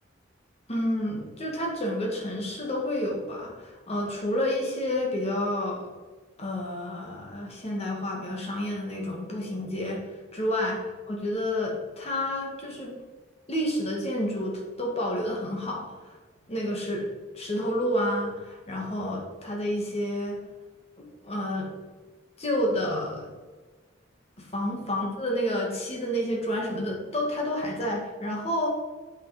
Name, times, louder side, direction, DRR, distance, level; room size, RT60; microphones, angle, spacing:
voice 1, 0.7-5.9 6.4-10.0 10.3-10.8 11.1-13.0 13.5-16.1 16.5-17.1 17.3-20.4 21.2-21.7 22.4-23.3 24.4-28.7, left 1 dB, 35° left, -1 dB, 2.1 m, -29 dB
8.7 x 5.8 x 5.0 m, 1.3 s
head